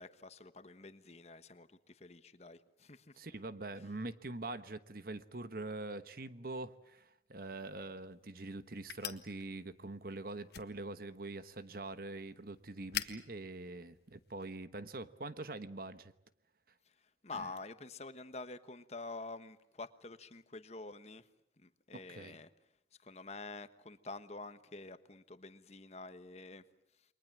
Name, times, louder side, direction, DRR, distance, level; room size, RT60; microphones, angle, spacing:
voice 1, 0.0-3.2 17.2-21.3 21.6-22.5 23.0-26.6, left 3 dB, 35° left, 11 dB, 1.2 m, -48 dB
voice 2, 3.2-16.1 17.4-17.5 21.9-22.4, right 2 dB, 55° right, 12 dB, 1.2 m, -44 dB
sound 1, 7.5-14.7, left 10 dB, 60° left, 1.5 m, -48 dB
29.0 x 23.0 x 7.6 m, 0.79 s
head